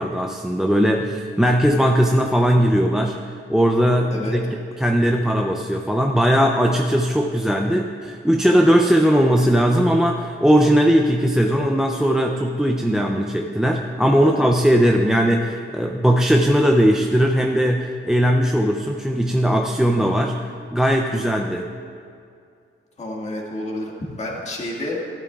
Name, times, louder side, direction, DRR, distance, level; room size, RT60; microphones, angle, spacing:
voice 1, 0.0-3.2 3.5-4.5 4.8-20.4 20.7-21.7, equal, 5° right, 2 dB, 0.4 m, -18 dB
voice 2, 14.1-14.7 23.0-23.9 24.2-25.0, left 1 dB, 35° left, -2 dB, 1.7 m, -30 dB
16.0 x 12.5 x 2.3 m, 2.4 s
wide cardioid pair, 170°, 21 cm